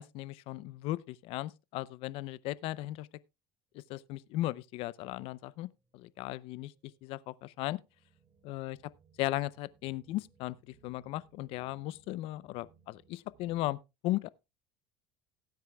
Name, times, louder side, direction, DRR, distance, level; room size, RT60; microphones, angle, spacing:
voice 1, 0.0-3.1 3.9-5.7 5.9-6.7 7.0-7.8 8.4-8.8 9.2-13.8 14.0-14.3, left 16 dB, 65° left, 0.6 m, -36 dB
sound 1, 3.7-13.7, right 5 dB, 25° right, 2.6 m, -67 dB
17.5 x 9.2 x 2.3 m
supercardioid pair, 105°, 11 cm